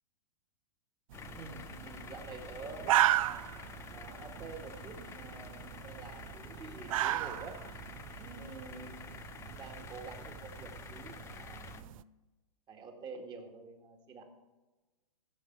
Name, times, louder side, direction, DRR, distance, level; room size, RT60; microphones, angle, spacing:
sound 1, 1.1-11.8, left 6 dB, 15° left, 0.5 m, -49 dB
sound 2, 1.1-12.0, right 13 dB, 60° right, 0.5 m, -36 dB
voice 1, 1.2-3.5 3.9-7.6 8.2-9.2 9.6-12.1 12.7-14.3, right 4 dB, 20° right, 4 dB, 1.9 m, -48 dB
15.0 x 7.5 x 4.6 m, 1.2 s
hypercardioid pair, 135°, 20 cm